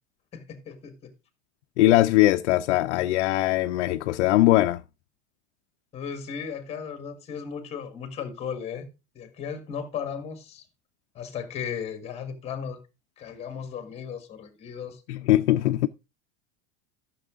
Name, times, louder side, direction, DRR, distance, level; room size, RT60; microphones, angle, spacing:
voice 1, 0.3-1.1 5.9-8.9 9.1-10.6 11.1-12.8 13.2-15.0, left 7 dB, 20° left, 1.5 m, -36 dB
voice 2, 1.8-4.8 15.1-15.9, left 16 dB, 90° left, 0.6 m, -21 dB
13.0 x 6.6 x 3.6 m
supercardioid pair, 175°, 34 cm